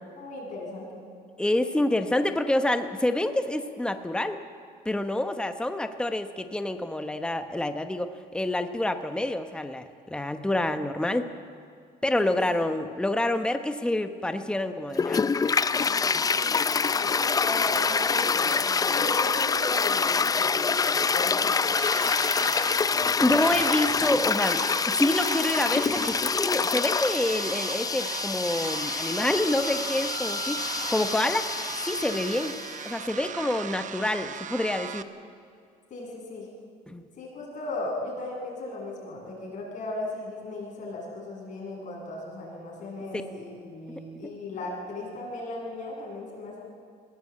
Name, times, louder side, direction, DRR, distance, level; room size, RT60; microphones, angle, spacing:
voice 1, 0.2-1.0 12.2-12.4 16.3-21.8 35.9-36.5 37.2-46.6, left 2 dB, 50° left, -2 dB, 7.9 m, -37 dB
voice 2, 1.4-4.4 4.8-11.3 12.0-15.3 23.2-31.5 31.8-32.6 32.8-35.1 36.9-37.0, left 1 dB, 5° left, 8 dB, 1.0 m, -27 dB
Toilet flush, 14.9-32.9, left 5 dB, 20° left, 0.5 m, -26 dB
sound 1, 21.7-35.0, right 8 dB, 45° right, 1.0 m, -38 dB
21.0 x 17.0 x 8.6 m, 2.3 s
cardioid pair, 110°, 17 cm